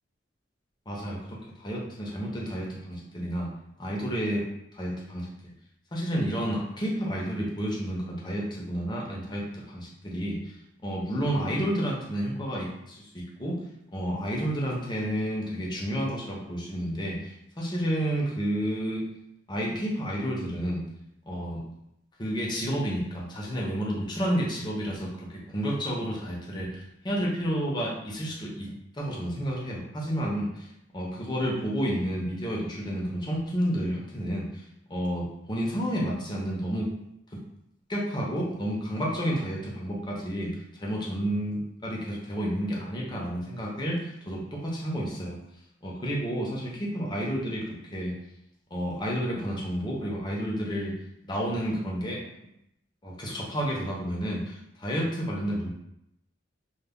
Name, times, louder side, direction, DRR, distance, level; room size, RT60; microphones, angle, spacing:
voice 1, 0.9-3.5 3.8-4.4 4.7-5.3 5.9-10.5 10.8-13.6 13.9-19.1 19.5-20.8 21.3-21.6 22.2-30.7 30.9-34.6 34.9-36.9 37.9-45.4 45.8-48.2 48.7-50.9 51.2-52.2 53.0-55.7, equal, 25° left, -3 dB, 0.6 m, -30 dB
2.1 x 2.1 x 3.5 m, 0.81 s
head